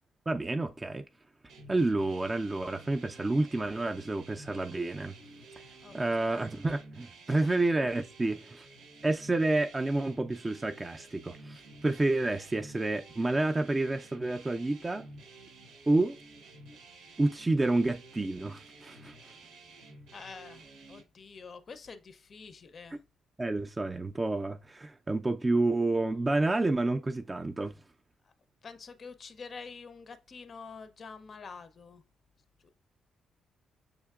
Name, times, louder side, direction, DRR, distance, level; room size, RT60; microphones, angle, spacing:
voice 1, 0.3-1.0 1.7-5.2 5.6-5.7 5.9-8.7 9.0-15.1 15.9-16.2 17.2-19.1 23.4-27.8, right 2 dB, 20° right, 0.4 m, -29 dB
sound 1, 1.5-21.0, right 2 dB, 90° right, 0.8 m, -52 dB
voice 2, 5.8-6.4 7.3-7.6 20.1-23.0 28.2-28.3 28.6-32.0 32.6-32.7, left 5 dB, 45° left, 0.5 m, -47 dB
6.4 x 2.9 x 2.3 m
cardioid pair, 90°, 0 cm